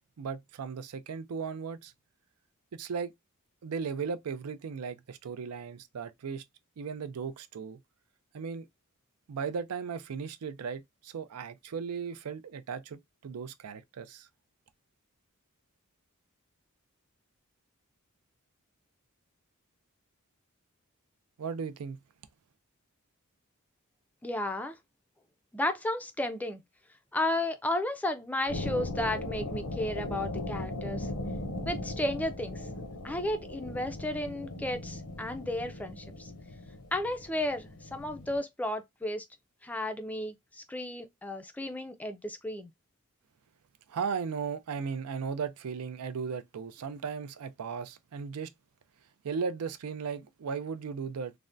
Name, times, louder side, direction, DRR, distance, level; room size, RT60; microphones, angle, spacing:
voice 1, 0.2-1.9 2.7-3.1 3.6-6.4 6.8-7.8 8.3-8.7 9.3-14.3 21.4-22.0 43.9-48.5 49.2-51.3, right 6 dB, 90° right, 0.4 m, -36 dB
voice 2, 24.2-24.8 25.5-26.6 27.1-31.1 31.6-32.7 33.0-36.3 36.9-39.2 39.6-42.7, left 1 dB, 5° left, 0.3 m, -33 dB
sound 1, 28.5-38.4, left 2 dB, 85° left, 0.7 m, -38 dB
3.3 x 2.1 x 2.5 m
head